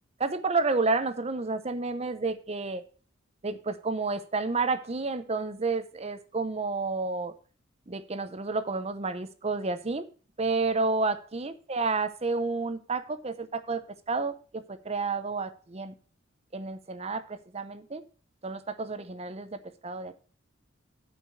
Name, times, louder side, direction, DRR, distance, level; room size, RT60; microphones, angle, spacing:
voice 1, 0.2-2.8 3.4-7.3 7.9-10.0 10.4-13.8 14.1-15.9 16.5-18.0 18.4-20.2, right 3 dB, 30° right, 12 dB, 0.7 m, -30 dB
8.8 x 5.1 x 6.1 m, 0.40 s
head